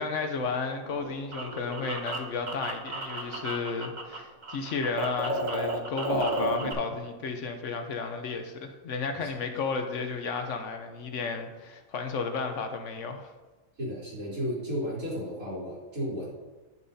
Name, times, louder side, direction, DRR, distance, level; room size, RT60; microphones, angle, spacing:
voice 1, 0.0-13.3, left 4 dB, 65° left, 6 dB, 1.0 m, -33 dB
sound 1, 0.8-4.2 4.4-6.7, right 1 dB, 40° right, 0.7 m, -33 dB
voice 2, 13.8-16.3, equal, 85° right, -7 dB, 3.4 m, -33 dB
10.0 x 6.9 x 2.7 m, 1.2 s
omnidirectional pair, 1.5 m